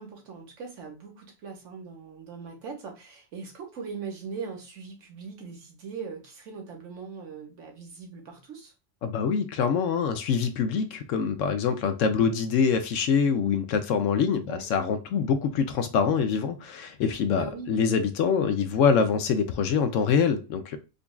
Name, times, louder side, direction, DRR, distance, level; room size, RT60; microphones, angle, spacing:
voice 1, 0.0-8.7 14.5-14.7 17.3-17.7, right 5 dB, 70° right, 1.3 m, -40 dB
voice 2, 9.0-20.8, left 6 dB, 75° left, 0.9 m, -25 dB
5.1 x 2.3 x 2.2 m
omnidirectional pair, 1.3 m